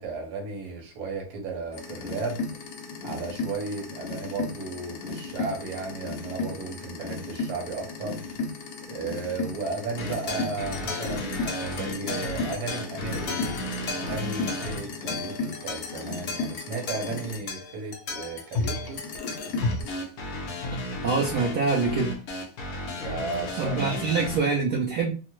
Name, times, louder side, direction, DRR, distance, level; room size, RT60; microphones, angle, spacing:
voice 1, 0.0-2.4 3.0-8.2 8.9-13.5 13.8-19.0 22.9-24.2, right 3 dB, 60° right, 1.2 m, -34 dB
sound 1, 1.7-17.4 18.5-19.9, left 3 dB, 85° left, 0.8 m, -34 dB
sound 2, 10.0-24.4, left 2 dB, 65° left, 0.9 m, -34 dB
voice 2, 21.0-22.2 23.6-25.1, right 4 dB, 90° right, 0.8 m, -25 dB
3.6 x 2.1 x 2.9 m
omnidirectional pair, 2.4 m